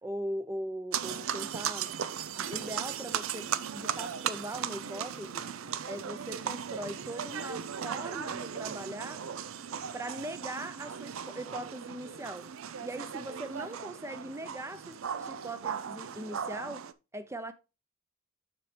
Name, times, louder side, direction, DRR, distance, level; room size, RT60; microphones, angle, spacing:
voice 1, 0.0-1.9 2.3-5.5 5.9-9.3 9.9-12.5 12.8-16.8 17.1-17.5, right 1 dB, 15° right, 0.6 m, -40 dB
sound 1, 0.9-16.9, right 8 dB, 80° right, 0.5 m, -37 dB
7.3 x 6.5 x 3.2 m
head